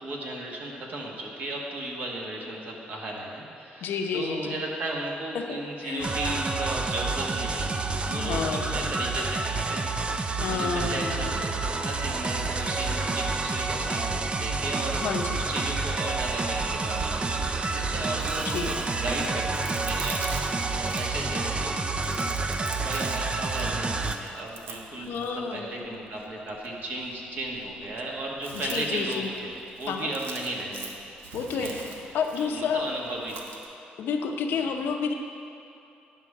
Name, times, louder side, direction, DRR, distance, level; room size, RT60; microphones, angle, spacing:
voice 1, 0.0-9.4 9.7-14.0 14.3-15.0 15.3-22.1 22.5-30.9 31.5-31.8 32.4-33.4 34.6-34.7, right 2 dB, 55° right, -2 dB, 1.5 m, -35 dB
voice 2, 3.8-4.6 5.3-6.2 8.1-9.2 10.4-11.4 15.0-15.4 18.5-18.7 25.0-25.8 28.5-29.3 29.9-30.1 31.3-32.9 34.0-35.1, left 6 dB, 75° left, 4 dB, 0.7 m, -30 dB
sound 1, 6.0-24.2, right 3 dB, 30° right, 0.4 m, -29 dB
Chewing mastication, 18.0-33.7, right 5 dB, 85° right, 0.7 m, -44 dB
10.0 x 3.7 x 6.5 m, 2.7 s
cardioid pair, 85°, 4 cm